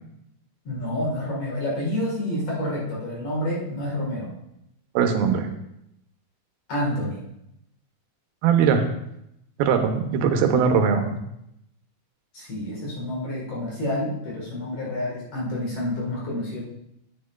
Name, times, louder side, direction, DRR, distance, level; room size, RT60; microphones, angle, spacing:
voice 1, 0.7-4.3 6.7-7.2 12.3-16.6, left 1 dB, 50° left, -4 dB, 2.4 m, -28 dB
voice 2, 5.0-5.5 8.4-8.9 9.6-11.0, right 6 dB, 85° right, 5 dB, 2.6 m, -20 dB
10.5 x 8.6 x 2.3 m, 0.80 s
omnidirectional pair, 4.3 m